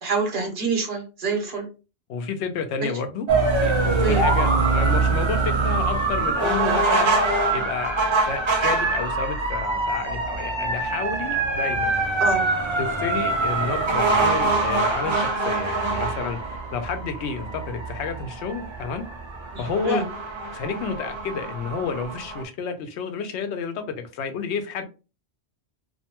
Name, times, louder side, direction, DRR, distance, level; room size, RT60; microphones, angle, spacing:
voice 1, 0.0-1.7 2.8-2.9 4.0-4.3 12.2-12.4 19.5-20.0, right 4 dB, 65° right, 2 dB, 1.1 m, -26 dB
voice 2, 2.1-3.3 3.6-7.1 7.5-8.0 8.3-12.0 12.8-19.1 19.6-20.1 20.5-24.8, left 5 dB, 90° left, 7 dB, 0.9 m, -30 dB
sound 1, 3.3-22.4, right 3 dB, 35° right, 0.5 m, -24 dB
2.6 x 2.2 x 2.8 m, 0.32 s
omnidirectional pair, 1.1 m